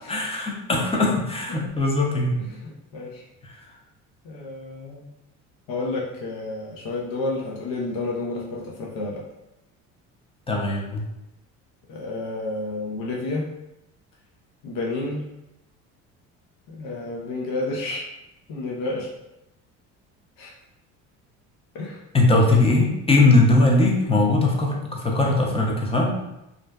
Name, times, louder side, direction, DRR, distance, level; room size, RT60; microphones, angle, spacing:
voice 1, 0.1-2.4 3.4-3.5 10.5-11.0 22.1-26.1, left 2 dB, 15° left, -1 dB, 0.5 m, -20 dB
voice 2, 2.4-3.2 4.2-5.1 5.7-9.2 11.9-13.5 14.6-15.2 16.7-18.0 18.5-19.1 20.4-20.5 21.7-22.0, left 2 dB, 65° left, -3 dB, 0.6 m, -30 dB
2.5 x 2.2 x 2.2 m, 0.90 s
supercardioid pair, 80°, 37 cm